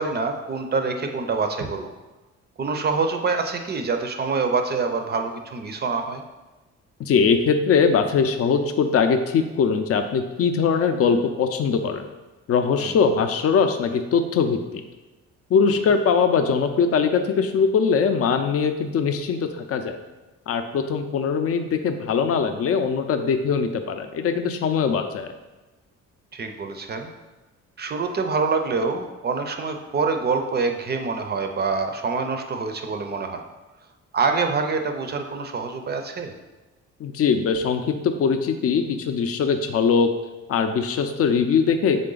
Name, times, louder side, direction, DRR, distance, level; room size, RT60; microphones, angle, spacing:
voice 1, 0.0-1.9 2.6-6.2 12.8-13.0 15.7-15.8 26.3-27.1 27.8-33.4 34.1-36.3, right 4 dB, 35° right, 6 dB, 0.4 m, -26 dB
voice 2, 7.1-12.0 12.5-14.6 15.5-19.4 19.7-20.0 20.5-25.3 37.0-40.1 40.5-42.0, left 6 dB, 50° left, 8 dB, 0.5 m, -21 dB
3.8 x 3.3 x 3.8 m, 1.1 s
cardioid pair, 90°, 30 cm